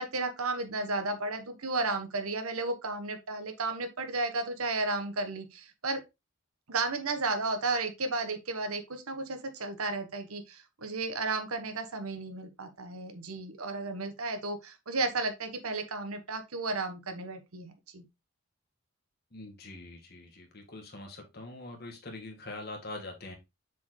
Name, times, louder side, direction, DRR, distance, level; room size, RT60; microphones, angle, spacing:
voice 1, 0.0-6.0 6.7-18.0, right 3 dB, 90° right, 1.2 m, -33 dB
voice 2, 19.3-23.3, left 2 dB, 45° left, 1.7 m, -43 dB
6.7 x 4.5 x 3.1 m
head